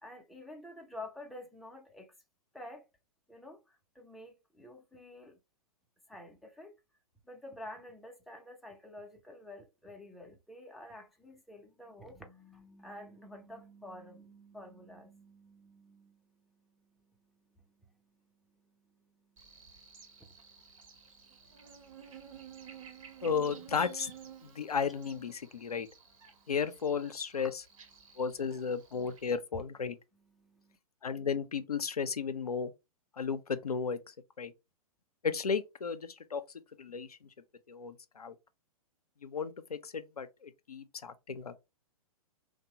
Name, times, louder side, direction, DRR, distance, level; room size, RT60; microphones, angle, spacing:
voice 1, 0.0-2.1 2.5-2.8 3.3-5.4 6.1-6.7 7.3-23.3 24.4-24.5 26.3-26.5 27.4-27.5 28.0-28.2 29.0-29.1 30.1-30.8, left 1 dB, ahead, 0.3 m, -51 dB
Buzz, 19.4-29.4, right 7 dB, 60° right, 0.8 m, -53 dB
voice 2, 23.2-24.1 24.4-25.9 26.5-27.5 28.2-30.0 31.0-32.7 33.2-34.0 34.4-34.5 35.2-36.4 36.8-37.2 37.7-38.3 39.2-41.5, left 6 dB, 90° left, 0.4 m, -34 dB
2.8 x 2.0 x 2.7 m
figure-of-eight pair, 115°, 19 cm